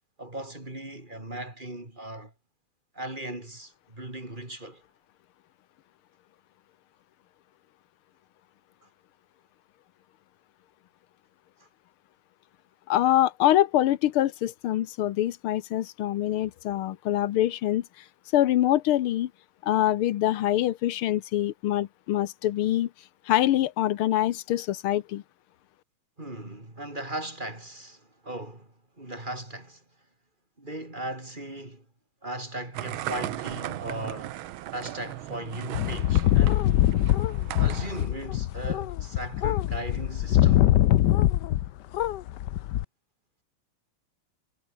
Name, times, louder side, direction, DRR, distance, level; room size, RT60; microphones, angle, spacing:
voice 1, 0.2-2.3 2.9-4.8 8.8-8.9 11.6-11.7 26.2-29.8 30.6-31.9 32.2-34.4 34.7-36.6 37.6-40.6, right 1 dB, 20° right, 4.5 m, -38 dB
voice 2, 12.9-17.8 18.3-19.3 19.6-22.9 23.3-25.2, left 13 dB, 90° left, 1.8 m, -24 dB
sound 1, 32.7-38.1, right 14 dB, 75° right, 1.6 m, -37 dB
sound 2, 35.7-41.7 41.9-42.8, left 13 dB, 65° left, 1.2 m, -23 dB
omnidirectional pair, 2.3 m